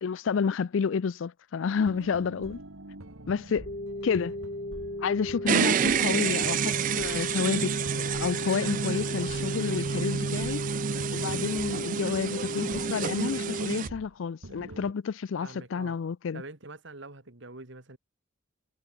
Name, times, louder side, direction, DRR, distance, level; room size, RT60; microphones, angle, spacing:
voice 1, 0.0-2.6 3.3-3.7 4.0-4.4 5.0-10.6 11.1-16.4, left 6 dB, 65° left, 0.4 m, -30 dB
sound 1, 1.7-14.1 14.4-14.9, right 1 dB, 75° right, 2.4 m, -45 dB
sound 2, 3.7-13.7, left 1 dB, 40° left, 2.4 m, -36 dB
sound 3, 5.5-13.9, right 7 dB, 40° right, 0.3 m, -29 dB
voice 2, 15.4-16.0 16.3-18.0, right 2 dB, 60° right, 2.4 m, -45 dB
head